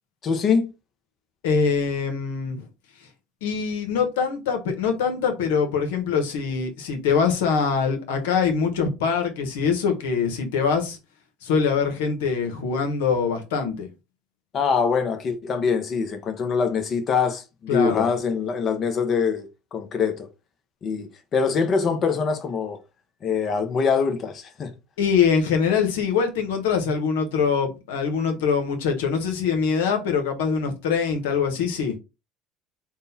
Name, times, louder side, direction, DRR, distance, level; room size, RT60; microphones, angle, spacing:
voice 1, 0.2-0.7 14.5-20.3 20.8-22.8 23.2-24.7, left 5 dB, 45° left, 0.8 m, -24 dB
voice 2, 1.4-2.7 3.4-11.0 11.4-13.9 17.7-18.1 25.0-32.0, left 6 dB, 85° left, 1.0 m, -23 dB
3.7 x 2.3 x 4.0 m
supercardioid pair, 85°, 0 cm